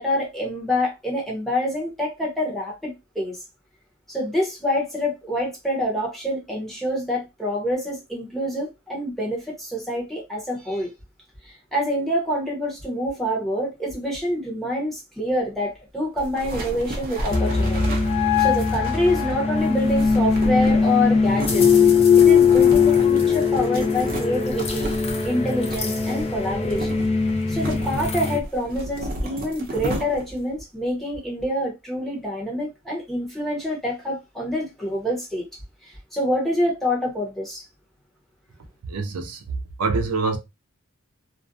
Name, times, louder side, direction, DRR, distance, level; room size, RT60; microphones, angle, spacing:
voice 1, 0.0-3.4 4.1-10.9 11.7-17.9 18.4-21.7 22.2-24.9 25.2-27.0 27.5-35.4 35.8-37.6, left 1 dB, ahead, 0.8 m, -26 dB
sound 1, 16.2-30.5, right 1 dB, 45° right, 0.6 m, -34 dB
sound 2, 17.3-28.4, left 6 dB, 25° left, 0.4 m, -20 dB
voice 2, 38.9-39.4 39.8-40.4, right 3 dB, 85° right, 0.5 m, -25 dB
2.4 x 2.1 x 2.6 m
head